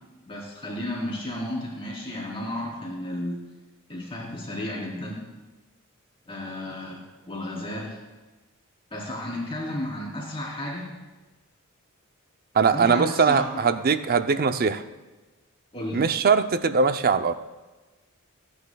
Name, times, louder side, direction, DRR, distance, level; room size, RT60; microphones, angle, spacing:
voice 1, 0.3-3.4 3.9-5.2 6.2-8.0 8.9-10.9 12.7-13.9 15.7-16.1, left 1 dB, 25° left, -3 dB, 3.3 m, -33 dB
voice 2, 12.5-14.8 15.9-17.3, right 5 dB, 45° right, 10 dB, 0.5 m, -21 dB
28.0 x 9.9 x 2.3 m, 1.2 s
head